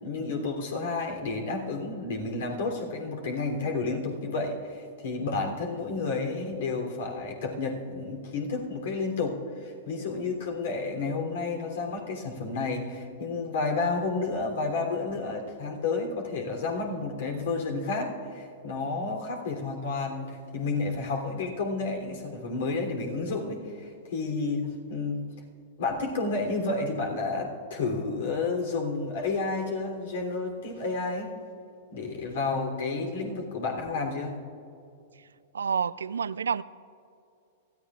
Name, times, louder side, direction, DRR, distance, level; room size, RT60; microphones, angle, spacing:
voice 1, 0.0-25.2 25.8-31.4 31.9-34.3, left 3 dB, 65° left, 2 dB, 3.2 m, -31 dB
voice 2, 35.5-36.6, right 6 dB, 80° right, 18 dB, 0.3 m, -28 dB
25.0 x 15.0 x 2.5 m, 2.6 s
hypercardioid pair, 105°, 0 cm